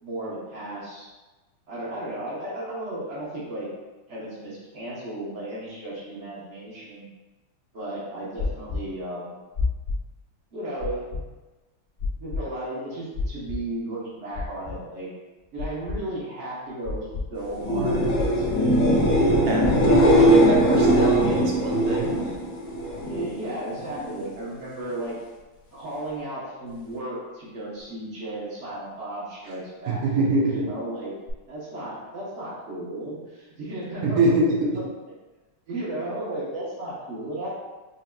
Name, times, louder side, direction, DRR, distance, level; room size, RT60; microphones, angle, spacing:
voice 1, 0.0-1.1 1.7-3.7 4.1-7.1 7.7-9.4 10.5-11.2 12.2-15.1 15.5-18.8 19.0-20.8 23.0-25.1 25.7-30.1 30.4-31.1 31.5-34.2 35.7-37.5, right 1 dB, 40° right, -7 dB, 1.1 m, -34 dB
Heart Beating, 8.4-8.8 9.5-10.0 10.8-11.2 12.0-12.4 13.1-13.6 14.3-14.7 15.6-16.0 16.8-17.2 18.1-18.5 19.3-19.7, left 4 dB, 35° left, 1.2 m, -28 dB
sound 1, 17.5-23.3 23.7-24.2 31.3-31.4, equal, 70° left, 1.6 m, -20 dB
voice 2, 19.5-22.4 29.4-29.5 29.9-30.7 34.0-34.8, right 2 dB, 75° right, -2 dB, 0.8 m, -24 dB
5.4 x 2.8 x 2.3 m, 1.2 s
omnidirectional pair, 2.3 m